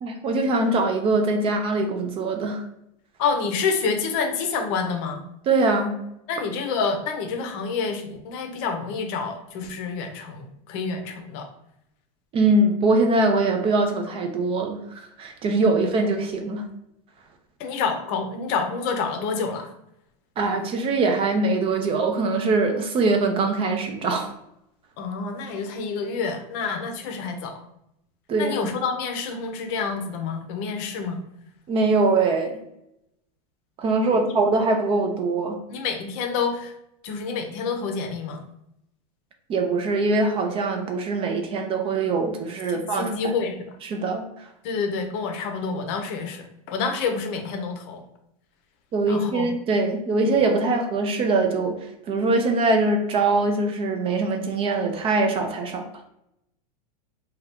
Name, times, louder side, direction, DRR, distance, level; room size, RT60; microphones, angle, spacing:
voice 1, 0.0-2.6 5.5-6.0 12.3-16.6 20.4-24.3 28.3-28.7 31.7-32.6 33.8-35.6 39.5-43.3 43.8-44.2 48.9-51.8 52.1-55.9, right 3 dB, 25° right, 4 dB, 0.4 m, -22 dB
voice 2, 3.2-5.2 6.3-11.5 15.7-15.9 17.6-19.7 25.0-27.6 28.4-31.2 34.0-34.3 35.7-36.7 37.0-38.4 42.7-43.6 44.6-48.0 49.1-49.5, left 5 dB, 50° left, 5 dB, 0.6 m, -28 dB
2.7 x 2.3 x 3.4 m, 0.79 s
supercardioid pair, 125°, 20 cm